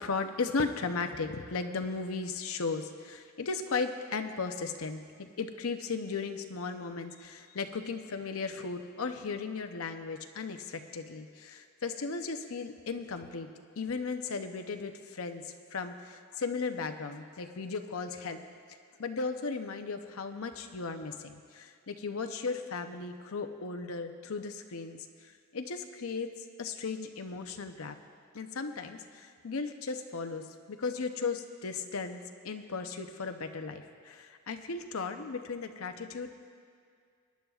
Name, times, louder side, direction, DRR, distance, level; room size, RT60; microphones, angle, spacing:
voice 1, 0.0-13.5 13.8-18.4 19.0-28.0 28.3-36.3, left 4 dB, 70° left, 7 dB, 0.7 m, -36 dB
21.5 x 10.5 x 2.4 m, 2.2 s
head